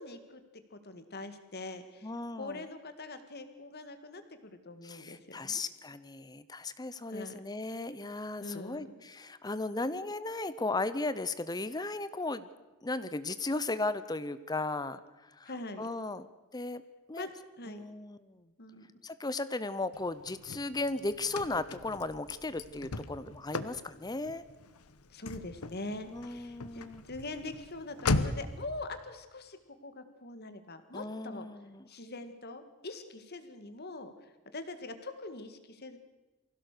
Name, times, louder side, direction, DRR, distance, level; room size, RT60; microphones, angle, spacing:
voice 1, 0.0-5.6 7.1-7.4 8.4-8.9 15.5-15.9 17.2-17.8 18.6-18.9 25.1-31.5 31.9-34.1 34.5-36.0, left 2 dB, 45° left, 9 dB, 1.9 m, -43 dB
voice 2, 2.0-2.6 4.8-12.5 12.8-15.0 15.3-15.5 15.8-16.8 17.1-17.3 17.7-18.4 19.0-24.4 26.1-27.0 30.9-31.8, left 2 dB, 20° left, 14 dB, 0.6 m, -36 dB
Car / Slam, 19.9-28.6, left 3 dB, 90° left, 1.1 m, -38 dB
24.5 x 16.0 x 6.7 m, 1.1 s
head